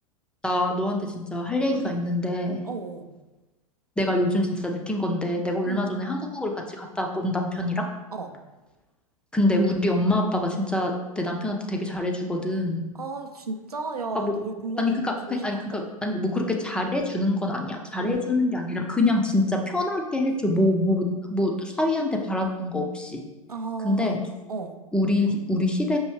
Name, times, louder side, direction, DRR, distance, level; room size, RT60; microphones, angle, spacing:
voice 1, 0.4-2.6 4.0-7.8 9.3-12.8 14.1-14.3 14.8-23.2 23.8-24.2 24.9-26.0, left 1 dB, 5° left, 1 dB, 0.4 m, -25 dB
voice 2, 2.6-3.1 5.6-5.8 8.1-8.3 12.9-15.9 18.0-18.4 23.5-24.2 24.5-24.7, right 4 dB, 85° right, 5 dB, 0.4 m, -34 dB
5.5 x 2.7 x 3.1 m, 1.1 s
figure-of-eight pair, 95°, 19 cm